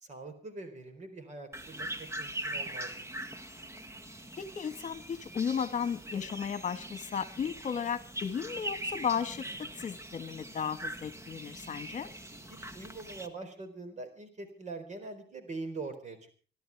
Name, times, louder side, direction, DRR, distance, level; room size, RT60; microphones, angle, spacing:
voice 1, 0.0-3.0 12.5-16.4, right 3 dB, 40° right, 8 dB, 4.3 m, -43 dB
sound 1, 1.5-13.3, right 1 dB, 15° right, 1.7 m, -42 dB
voice 2, 4.4-12.1, left 7 dB, 45° left, 12 dB, 1.7 m, -35 dB
26.0 x 13.0 x 3.6 m, 0.39 s
cardioid pair, 110°, 18 cm